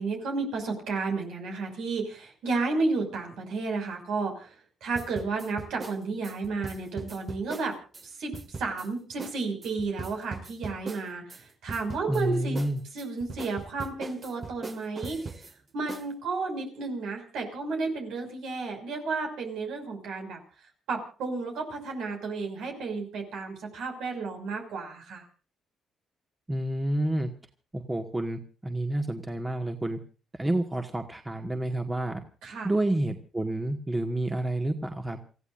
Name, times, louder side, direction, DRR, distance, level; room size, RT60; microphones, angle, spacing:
voice 1, 0.0-7.7 8.0-12.6 12.9-15.2 15.7-20.4 20.9-25.2 32.4-32.7, right 3 dB, 80° right, 3 dB, 6.0 m, -32 dB
sound 1, 4.9-8.1 8.3-8.9 9.2-9.4 9.6-11.4 11.7-12.2 12.5-15.5 15.9-16.1, right 4 dB, 35° right, 1.9 m, -40 dB
voice 2, 12.1-12.8 26.5-27.3 27.7-30.0 30.4-32.2 32.6-35.2, right 1 dB, 15° right, 5 dB, 1.8 m, -29 dB
29.0 x 15.0 x 2.6 m, 0.37 s
cardioid pair, 90°, 0 cm